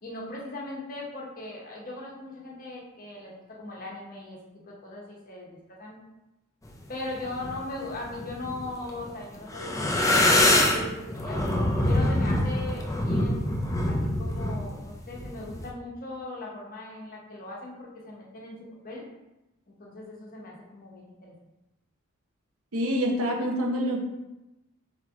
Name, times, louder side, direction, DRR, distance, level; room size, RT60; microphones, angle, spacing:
voice 1, 0.0-4.4 4.7-6.0 6.9-11.4 11.8-13.5 13.9-18.6 18.8-19.1 19.7-21.3, left 2 dB, 40° left, -2 dB, 0.9 m, -39 dB
sound 1, 7.2-7.6 8.1-9.1 9.4-15.7, left 1 dB, 15° left, 0.4 m, -24 dB
voice 2, 22.7-24.0, equal, 75° right, 0 dB, 0.9 m, -26 dB
4.1 x 3.3 x 3.5 m, 0.97 s
head